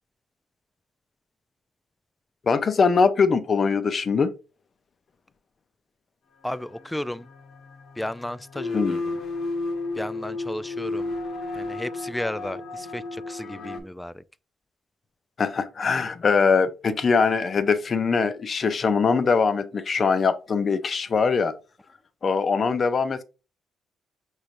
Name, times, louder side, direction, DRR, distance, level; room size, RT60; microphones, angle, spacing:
voice 1, 2.5-4.3 8.7-9.0 15.4-21.5 22.2-23.2, left 5 dB, 45° left, 0.6 m, -22 dB
voice 2, 6.4-7.3 8.0-9.0 10.0-11.1 11.6-14.2, left 1 dB, 10° left, 0.3 m, -33 dB
sound 1, 6.5-13.8, left 2 dB, 60° left, 1.3 m, -33 dB
5.5 x 3.2 x 2.6 m
cardioid pair, 90°, 0 cm